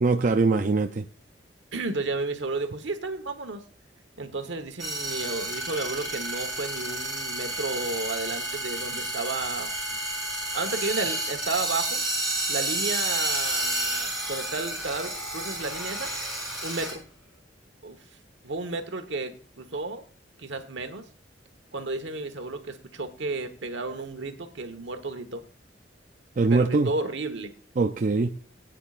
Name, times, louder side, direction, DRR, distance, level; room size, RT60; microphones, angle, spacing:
voice 1, 0.0-1.1 26.4-26.9 27.8-28.3, right 3 dB, 45° right, 5 dB, 0.5 m, -22 dB
voice 2, 1.7-3.6 4.2-9.7 10.5-12.0 12.5-16.1 16.6-17.0 17.8-18.0 18.4-20.0 20.4-21.0 21.7-25.4 26.5-27.5, right 3 dB, 75° right, 7 dB, 1.3 m, -32 dB
sound 1, 4.8-16.9, right 1 dB, ahead, 7.2 m, -30 dB
19.5 x 9.1 x 2.5 m, 0.38 s
head